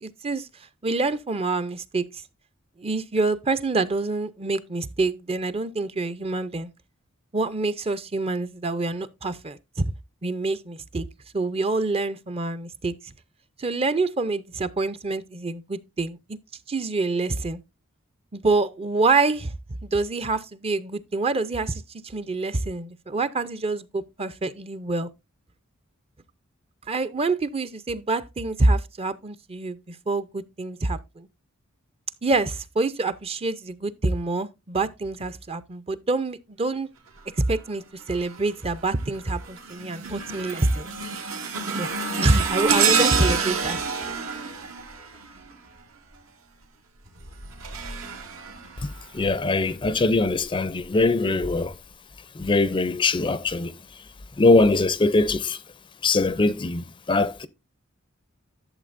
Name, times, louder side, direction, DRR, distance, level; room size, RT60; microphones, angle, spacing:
voice 1, 0.0-0.5 0.8-2.2 2.8-6.7 7.3-9.9 10.2-11.1 11.3-13.1 13.6-16.4 16.7-17.6 18.3-19.6 19.8-25.1 26.9-31.3 32.2-36.9 37.4-40.9 41.8-41.9 42.2-43.8, right 3 dB, 30° right, 0.6 m, -26 dB
sound 1, 38.1-38.5 39.0-45.8 47.1-49.3 49.9-50.1 51.0-51.1, right 5 dB, 85° right, 2.1 m, -28 dB
voice 2, 49.1-51.7 52.4-53.7 54.4-55.6 56.0-57.5, left 3 dB, 25° left, 0.5 m, -21 dB
12.0 x 7.1 x 2.5 m
head